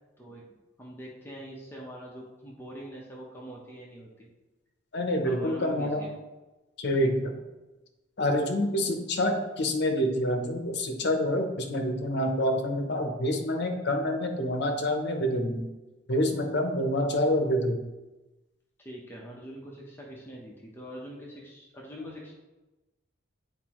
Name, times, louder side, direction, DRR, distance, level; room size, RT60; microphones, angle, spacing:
voice 1, 0.8-4.3 5.2-6.1 18.8-22.3, equal, 10° left, -3 dB, 0.9 m, -43 dB
voice 2, 4.9-6.0 6.8-7.3 8.2-15.7 16.1-17.8, left 1 dB, 55° left, 4 dB, 0.8 m, -27 dB
8.1 x 4.6 x 3.0 m, 1.1 s
head